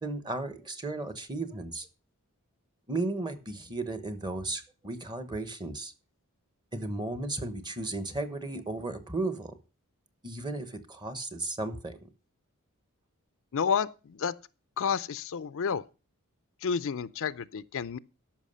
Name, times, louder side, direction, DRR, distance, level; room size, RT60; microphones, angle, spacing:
voice 1, 0.0-1.9 2.9-5.9 6.7-9.5 10.2-12.0, right 2 dB, 20° right, 1.1 m, -35 dB
voice 2, 13.5-14.3 14.8-15.8 16.6-18.0, left 6 dB, 65° left, 0.5 m, -30 dB
13.5 x 5.9 x 5.5 m
head